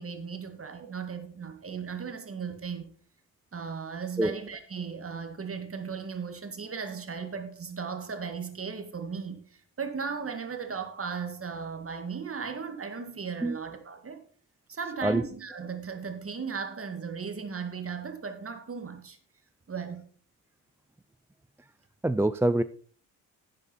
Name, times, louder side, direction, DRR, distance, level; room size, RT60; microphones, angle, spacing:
voice 1, 0.0-2.9 3.5-14.2 14.7-19.2 19.7-20.1, right 6 dB, 35° right, 2.0 m, -36 dB
voice 2, 22.0-22.6, right 1 dB, 5° right, 0.4 m, -25 dB
11.0 x 9.1 x 4.1 m
cardioid pair, 80°, 40 cm